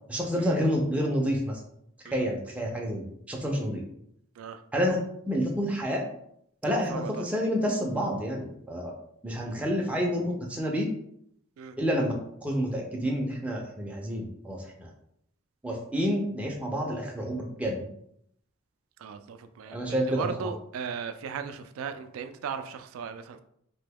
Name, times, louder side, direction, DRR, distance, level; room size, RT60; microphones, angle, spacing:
voice 1, 0.1-1.6 2.1-3.8 4.7-5.0 5.3-6.0 6.6-8.9 9.2-10.9 11.8-12.1 12.4-14.9 15.6-17.9 19.7-20.5, equal, 5° right, -1 dB, 0.4 m, -29 dB
voice 2, 6.6-7.2 11.6-11.8 19.0-23.4, right 6 dB, 80° right, 9 dB, 0.3 m, -37 dB
3.0 x 2.2 x 3.4 m, 0.71 s
head